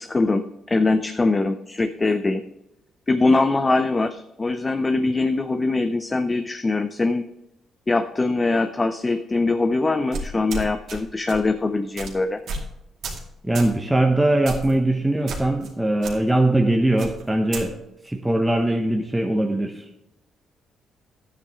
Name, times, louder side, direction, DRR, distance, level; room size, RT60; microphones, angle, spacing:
voice 1, 0.0-2.4 3.1-7.2 7.9-12.4, left 3 dB, 25° left, 9 dB, 0.6 m, -22 dB
sound 1, 10.1-11.0 11.3-11.5 12.0-12.1 12.5-12.7 13.0-13.3 13.5-13.7 14.5-14.7 15.3-15.7 16.0-16.1 17.0-17.6, right 2 dB, 70° right, 2.3 m, -31 dB
voice 2, 13.4-17.8 18.0-20.0, right 1 dB, 5° right, 2 dB, 1.0 m, -21 dB
10.5 x 9.1 x 3.6 m, 0.88 s
cardioid pair, 90°, 0 cm